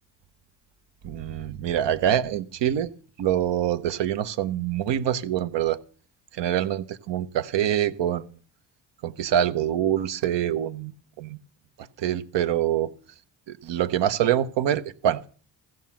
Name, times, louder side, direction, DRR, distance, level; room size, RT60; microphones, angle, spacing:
voice 1, 1.0-2.9 3.2-5.8 6.3-8.2 9.0-10.9 11.2-11.4 12.0-12.9 13.5-15.3, right 10 dB, 70° right, 11 dB, 1.0 m, -25 dB
14.5 x 7.8 x 7.1 m, 0.41 s
supercardioid pair, 55°, 45 cm